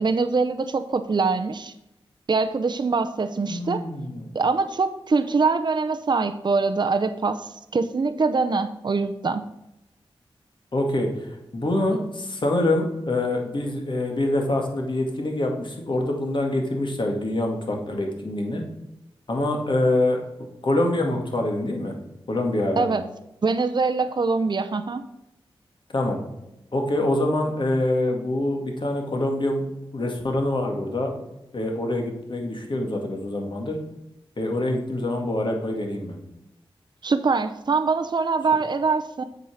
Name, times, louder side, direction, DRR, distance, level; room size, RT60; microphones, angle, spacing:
voice 1, 0.0-1.7 2.3-3.8 4.3-9.4 22.8-23.0 23.4-25.0 37.0-39.2, right 4 dB, 50° right, 8 dB, 0.6 m, -23 dB
voice 2, 3.5-4.3 10.7-11.1 11.5-18.6 19.3-20.2 20.6-21.9 22.3-22.9 25.9-26.2 26.7-29.7 29.9-31.1 31.5-33.8 34.4-36.2, left 1 dB, 55° left, 2 dB, 2.1 m, -25 dB
7.8 x 5.6 x 6.3 m, 0.90 s
cardioid pair, 50°, 10 cm